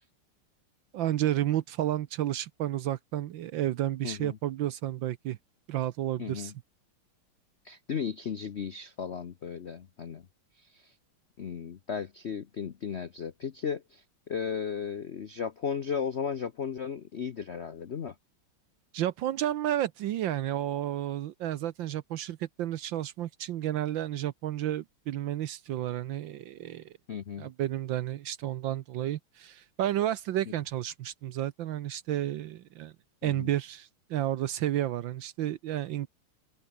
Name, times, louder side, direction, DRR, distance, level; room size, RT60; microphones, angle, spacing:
voice 1, 0.9-5.4 5.7-6.5 18.9-26.9 27.4-32.9 33.2-36.1, right 12 dB, 70° right, 1.4 m, -31 dB
voice 2, 4.0-4.4 6.2-6.5 7.6-10.3 10.6-10.9 11.4-18.1 27.1-27.5 33.2-33.5, left 7 dB, 75° left, 0.6 m, -35 dB
open air
omnidirectional pair, 2.4 m